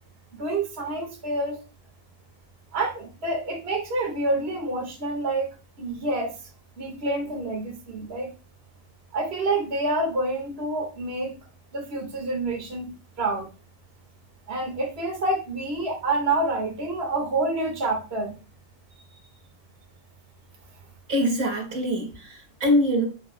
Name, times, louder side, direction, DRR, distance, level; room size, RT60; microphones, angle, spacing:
voice 1, 0.3-1.6 2.7-5.5 5.8-6.4 6.8-8.3 9.1-11.4 11.7-13.5 14.5-18.4, right 2 dB, 40° right, 2.0 m, -28 dB
voice 2, 21.1-23.1, equal, 60° right, 2.4 m, -24 dB
9.3 x 9.0 x 2.2 m
omnidirectional pair, 1.8 m